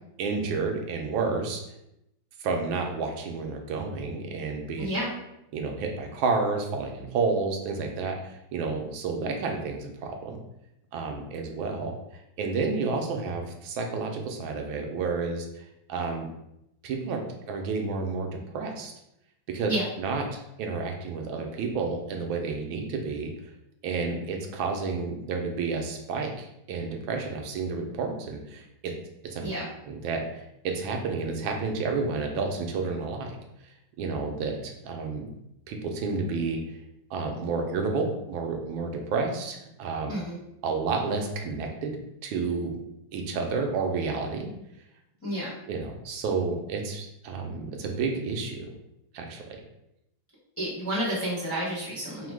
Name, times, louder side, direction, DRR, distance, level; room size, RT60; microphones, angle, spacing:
voice 1, 0.2-1.6 2.4-4.9 5.5-10.4 10.9-11.9 12.4-15.5 15.9-16.3 16.8-17.2 17.5-18.3 18.5-18.9 19.5-19.7 20.0-20.2 20.6-23.3 23.8-28.9 29.2-29.5 29.8-33.4 34.0-35.3 35.7-36.6 37.1-40.1 40.6-42.0 42.2-42.8 43.1-44.5 45.7-48.7 49.1-49.4, right 4 dB, 85° right, 3 dB, 1.4 m, -30 dB
voice 2, 40.1-40.4 45.2-45.5 50.6-52.3, right 1 dB, 10° left, -7 dB, 0.9 m, -30 dB
4.0 x 2.1 x 4.5 m, 0.83 s
omnidirectional pair, 2.1 m